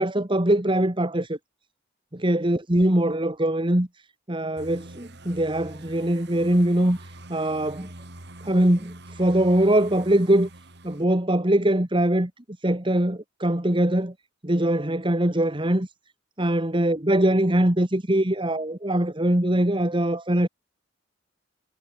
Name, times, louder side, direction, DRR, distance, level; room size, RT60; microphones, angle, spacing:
voice 1, 0.0-1.4 2.2-3.9 4.3-7.9 8.4-10.5 10.8-12.3 12.6-14.1 14.4-15.9 16.4-20.5, right 1 dB, 25° right, 2.0 m, -22 dB
sound 1, 4.6-11.0, right 1 dB, 60° right, 4.6 m, -45 dB
head